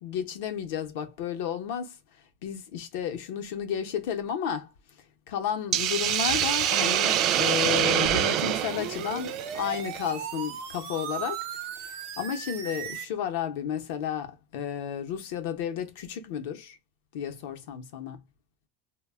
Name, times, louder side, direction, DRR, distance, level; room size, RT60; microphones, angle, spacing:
voice 1, 0.0-2.0 2.4-4.7 5.3-11.5 11.8-16.8 17.1-18.2, left 8 dB, 75° left, 0.6 m, -32 dB
Hiss, 5.7-10.0, right 11 dB, 40° right, 0.3 m, -25 dB
sound 1, 8.0-13.1, right 7 dB, 65° right, 0.7 m, -37 dB
2.1 x 2.1 x 3.3 m
supercardioid pair, 155°, 0 cm